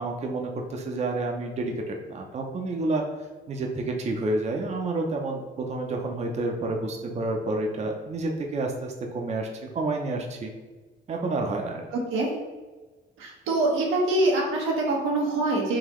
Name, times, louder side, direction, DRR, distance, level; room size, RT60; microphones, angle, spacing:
voice 1, 0.0-10.5 11.1-11.8, right 2 dB, 35° right, 2 dB, 0.5 m, -29 dB
voice 2, 11.9-12.3 13.2-15.8, right 2 dB, 90° right, -1 dB, 0.9 m, -24 dB
3.8 x 2.8 x 3.0 m, 1.3 s
cardioid pair, 90°, 20 cm